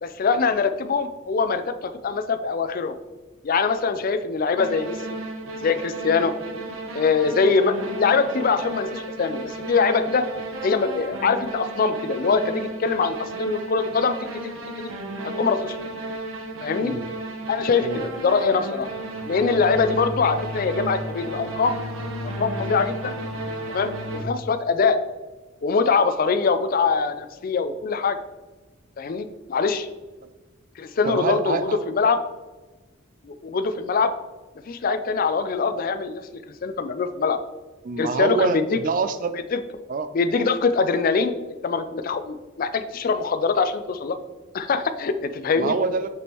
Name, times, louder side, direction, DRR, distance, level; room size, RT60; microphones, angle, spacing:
voice 1, 0.0-3.0 3.4-5.0 5.6-6.3 6.9-10.3 10.6-14.2 15.4-15.8 16.6-16.9 17.5-18.9 19.3-21.8 22.2-23.1 23.7-25.0 25.6-28.2 29.0-29.9 30.8-32.2 33.2-34.1 34.7-37.4 38.0-38.8 39.5-39.6 40.1-41.3 41.6-44.2 44.5-45.8, left 4 dB, 45° left, 9 dB, 0.4 m, -23 dB
sound 1, 4.6-24.2, right 2 dB, 75° right, 0.9 m, -33 dB
voice 2, 31.0-31.8 37.8-39.4 39.9-40.1 45.6-46.1, right 4 dB, 40° right, 11 dB, 0.4 m, -25 dB
6.1 x 6.0 x 3.0 m, 1.2 s
head